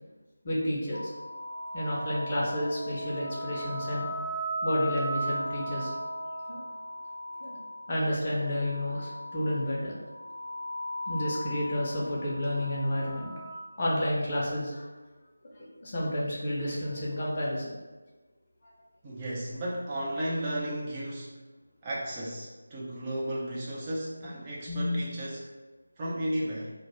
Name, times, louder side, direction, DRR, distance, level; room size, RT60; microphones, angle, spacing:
voice 1, 0.4-1.0 1.7-4.1 4.6-5.9 6.5-6.6 7.4-7.6 7.9-9.9 11.1-13.3 13.8-14.8 15.8-17.7 18.6-18.7 24.7-25.0, left 1 dB, 30° left, -5 dB, 0.5 m, -30 dB
sound 1, 0.9-8.0 8.5-9.8 10.1-13.5, equal, 85° left, 0.6 m, -37 dB
voice 2, 19.0-21.3 21.8-25.4 26.0-26.7, right 1 dB, 20° right, -6 dB, 0.3 m, -34 dB
2.2 x 2.1 x 2.9 m, 1.2 s
figure-of-eight pair, 160°, 0 cm